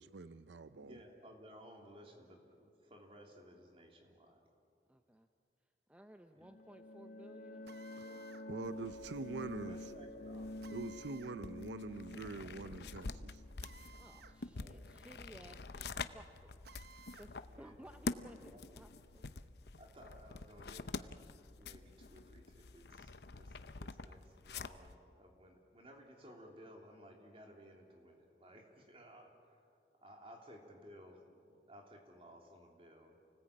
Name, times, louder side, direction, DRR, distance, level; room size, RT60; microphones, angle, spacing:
voice 1, 0.0-1.0 7.9-9.8 10.7-13.4, right 3 dB, 90° right, 13 dB, 0.6 m, -45 dB
voice 2, 0.7-4.4 6.3-6.6 9.2-10.6 14.5-15.1 17.5-18.2 18.4-18.8 19.8-21.1 21.6-29.6 30.0-33.2, equal, 30° right, 1 dB, 3.2 m, -58 dB
voice 3, 4.9-5.3 5.9-8.3 14.0-16.6 17.2-19.3, equal, 5° right, 6 dB, 0.6 m, -58 dB
sound 1, 6.4-15.0, left 1 dB, 50° left, 1.1 m, -49 dB
Drill, 7.7-8.5 10.6-11.4 13.6-14.4 14.7-14.8 16.6-17.3, right 5 dB, 65° right, 0.9 m, -58 dB
sound 2, 8.6-25.0, left 3 dB, 70° left, 0.7 m, -47 dB
29.0 x 19.0 x 8.6 m, 2.5 s
head